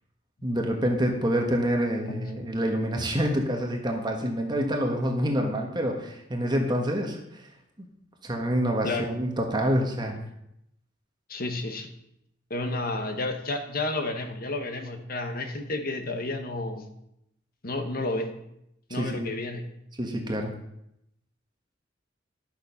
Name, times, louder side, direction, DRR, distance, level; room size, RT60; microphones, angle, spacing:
voice 1, 0.4-7.5 7.8-7.9 8.2-10.1 18.9-19.3 20.0-20.5, equal, 20° right, 2 dB, 1.3 m, -27 dB
voice 2, 11.3-11.9 12.5-16.8 17.6-18.4 18.9-19.6, left 2 dB, 50° left, 7 dB, 1.2 m, -31 dB
11.5 x 6.9 x 5.6 m, 0.79 s
head